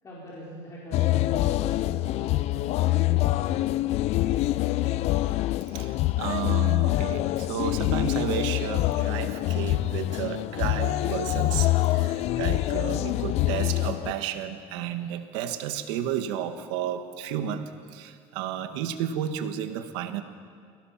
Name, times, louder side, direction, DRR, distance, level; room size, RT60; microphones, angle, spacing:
voice 1, 0.0-3.6 4.1-5.3, equal, 20° left, -6 dB, 4.5 m, -44 dB
sound 1, 0.9-14.1, left 16 dB, 50° left, 0.5 m, -25 dB
voice 2, 5.7-20.2, right 10 dB, 85° right, 7 dB, 1.8 m, -32 dB
30.0 x 18.0 x 5.9 m, 2.2 s
cardioid pair, 150°, 14 cm